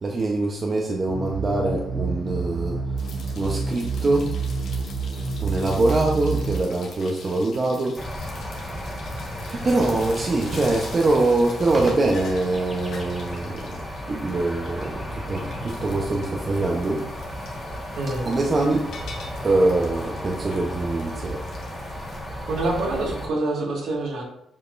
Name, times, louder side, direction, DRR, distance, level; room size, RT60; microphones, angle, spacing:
voice 1, 0.0-2.8 3.4-4.3 5.4-8.0 9.5-13.7 14.1-17.1 18.2-18.9 19.4-21.4, right 2 dB, 35° right, 0 dB, 0.9 m, -23 dB
sound 1, 1.1-6.6, right 4 dB, 90° right, 2.3 m, -28 dB
sound 2, 3.0-22.2, left 4 dB, 70° left, 1.4 m, -45 dB
sound 3, 8.0-23.3, equal, ahead, 1.6 m, -34 dB
voice 2, 17.9-18.3 22.5-24.2, right 2 dB, 70° right, -2 dB, 1.9 m, -26 dB
7.0 x 5.1 x 2.6 m, 0.73 s
cardioid pair, 90°, 0 cm